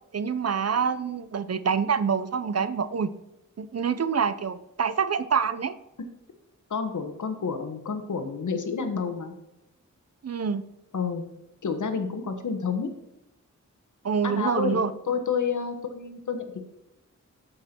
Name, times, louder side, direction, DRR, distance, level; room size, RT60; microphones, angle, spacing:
voice 1, 0.1-3.1 3.6-5.8 10.2-10.6 14.0-14.9, right 6 dB, 55° right, 13 dB, 0.7 m, -26 dB
voice 2, 6.7-9.3 10.9-11.2 11.6-12.9 14.2-14.8 15.1-16.6, left 5 dB, 80° left, 7 dB, 1.5 m, -29 dB
13.0 x 5.7 x 4.5 m, 0.91 s
wide cardioid pair, 115°, 30 cm